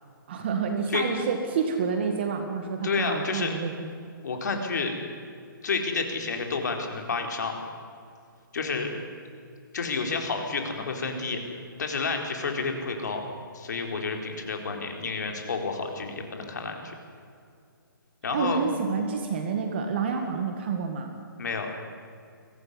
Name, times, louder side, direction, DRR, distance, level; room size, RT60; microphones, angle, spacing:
voice 1, 0.3-3.7 18.3-21.1, right 5 dB, 30° right, 4 dB, 2.0 m, -28 dB
voice 2, 2.8-3.5 4.2-4.9 5.6-7.6 8.5-8.9 9.7-11.4 11.8-13.2 13.5-17.0 18.2-18.6 21.4-21.7, left 4 dB, 50° left, 3 dB, 4.2 m, -30 dB
23.5 x 17.0 x 9.7 m, 2.4 s
hypercardioid pair, 175°, 12 cm